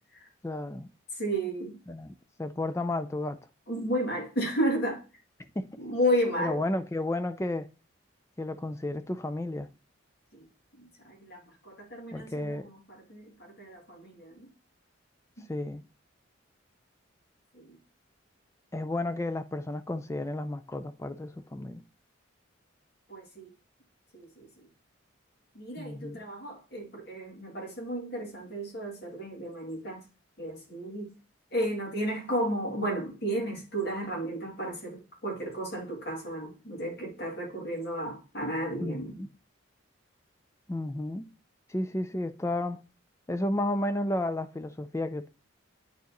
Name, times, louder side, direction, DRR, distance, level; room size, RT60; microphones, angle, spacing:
voice 1, 0.4-0.9 1.9-3.4 5.6-5.8 6.4-7.7 8.4-9.7 12.1-12.7 15.5-15.8 18.7-21.8 25.8-26.2 38.8-39.3 40.7-41.3 41.7-42.8 43.3-45.3, left 1 dB, 15° left, 0.4 m, -32 dB
voice 2, 1.2-1.8 3.7-5.0 5.8-6.6 10.3-10.4 10.8-12.6 13.1-14.5 17.5-17.8 23.1-23.5 24.1-24.5 25.5-30.0 30.4-31.1 31.5-39.1, equal, 55° left, 2.4 m, -33 dB
9.4 x 4.6 x 3.0 m
head